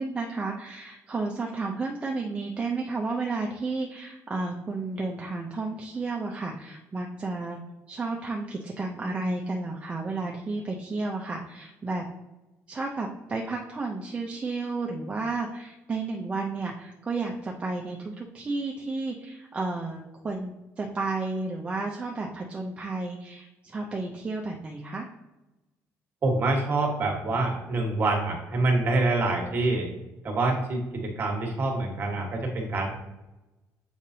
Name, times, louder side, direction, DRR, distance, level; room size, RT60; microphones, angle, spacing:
voice 1, 0.0-7.6 7.9-12.0 12.7-25.1, right 3 dB, 20° right, -1 dB, 0.5 m, -32 dB
voice 2, 26.2-29.9 30.2-32.9, right 2 dB, 35° right, 1 dB, 1.4 m, -26 dB
7.1 x 5.0 x 2.7 m, 1.0 s
cardioid pair, 155°, 6 cm